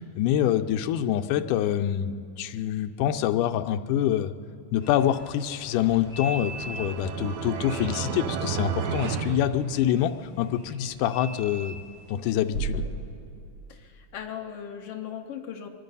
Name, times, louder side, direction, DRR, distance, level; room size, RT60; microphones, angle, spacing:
voice 1, 0.0-4.3 4.7-11.8 12.1-12.9, left 10 dB, 90° left, 8 dB, 2.2 m, -26 dB
sound 1, 4.8-12.8, right 1 dB, 35° right, 3.9 m, -40 dB
sound 2, 5.8-10.3, right 7 dB, 75° right, 2.0 m, -33 dB
voice 2, 13.7-15.7, left 9 dB, 70° left, 3 dB, 1.4 m, -38 dB
25.0 x 11.0 x 5.4 m, 2.4 s
omnidirectional pair, 3.6 m